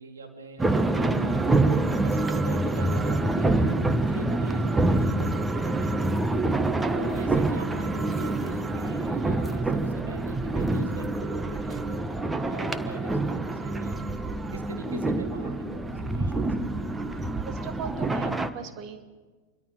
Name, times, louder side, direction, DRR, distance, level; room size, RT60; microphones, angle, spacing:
voice 1, 0.0-1.6 2.0-6.1 6.9-14.0 14.5-16.8 17.1-17.3, right 3 dB, 65° right, 3 dB, 3.7 m, -43 dB
sound 1, 0.6-18.5, right 2 dB, 10° right, 1.3 m, -26 dB
voice 2, 17.4-19.0, right 7 dB, 40° right, 7 dB, 2.3 m, -38 dB
27.5 x 22.5 x 5.8 m, 1.3 s
figure-of-eight pair, 90°, 0 cm